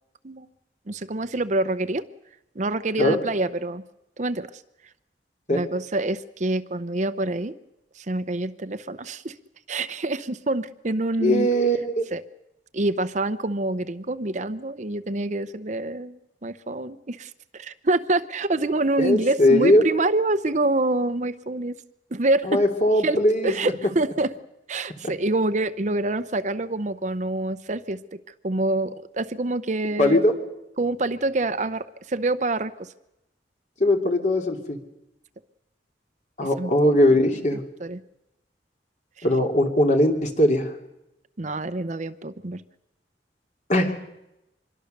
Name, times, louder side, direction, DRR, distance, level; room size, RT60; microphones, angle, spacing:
voice 1, 0.9-2.0 2.5-3.8 4.2-4.6 5.5-7.5 8.0-9.3 9.7-11.5 12.1-12.2 12.7-21.8 22.1-22.6 23.0-24.3 24.7-28.2 28.4-30.2 30.8-32.9 36.6-36.7 37.8-38.0 39.2-39.3 41.4-42.6, right 2 dB, 45° right, 12 dB, 0.8 m, -26 dB
voice 2, 11.2-12.1 19.0-19.8 22.4-23.5 30.0-30.3 33.8-34.8 36.4-37.6 39.2-40.7 43.7-43.9, left 1 dB, 45° left, 3 dB, 2.7 m, -20 dB
25.0 x 22.0 x 6.7 m, 0.91 s
head